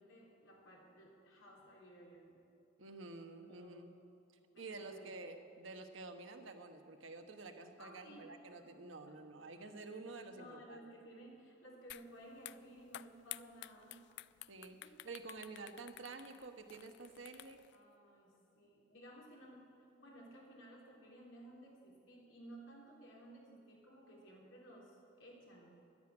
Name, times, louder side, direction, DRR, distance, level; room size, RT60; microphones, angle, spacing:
voice 1, 0.1-2.4 3.5-3.9 4.5-5.2 7.8-8.6 9.1-9.2 9.5-9.6 10.3-14.0 14.7-14.9 17.7-25.8, right 1 dB, 85° left, -3 dB, 3.5 m, -57 dB
voice 2, 2.8-3.9 4.6-10.9 14.5-17.6, right 3 dB, 80° right, 6 dB, 1.2 m, -50 dB
sound 1, 11.9-12.1 12.4-17.7, left 15 dB, 60° left, 0.3 m, -51 dB
11.5 x 10.0 x 8.8 m, 2.7 s
head